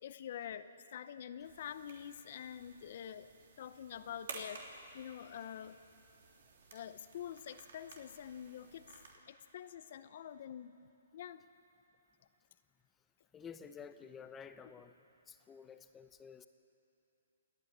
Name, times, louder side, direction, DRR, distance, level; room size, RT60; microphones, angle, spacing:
voice 1, 0.0-5.8 6.7-9.0 9.3-10.8 11.1-11.4, left 9 dB, 50° left, 12 dB, 0.6 m, -47 dB
sound 1, 1.4-9.2, right 4 dB, 65° right, 3.1 m, -54 dB
voice 2, 13.3-15.0 15.3-16.5, left 6 dB, 10° left, 10 dB, 0.7 m, -51 dB
28.0 x 9.5 x 9.9 m, 2.8 s
hypercardioid pair, 155°, 0 cm